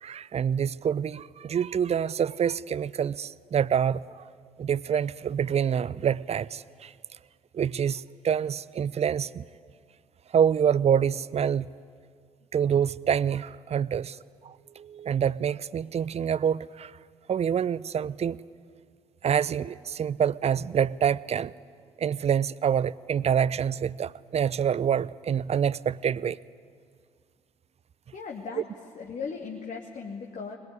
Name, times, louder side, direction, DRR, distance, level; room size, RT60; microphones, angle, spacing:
voice 1, 0.0-4.2 4.6-6.9 7.5-9.4 10.3-11.7 12.5-14.2 14.4-16.9 17.3-18.4 19.2-21.5 22.0-26.4 28.6-28.7, right 8 dB, 40° right, 20 dB, 0.6 m, -26 dB
voice 2, 28.1-28.6 28.9-30.6, left 5 dB, 45° left, -1 dB, 2.5 m, -37 dB
21.5 x 20.5 x 9.7 m, 2.2 s
figure-of-eight pair, 45°, 17 cm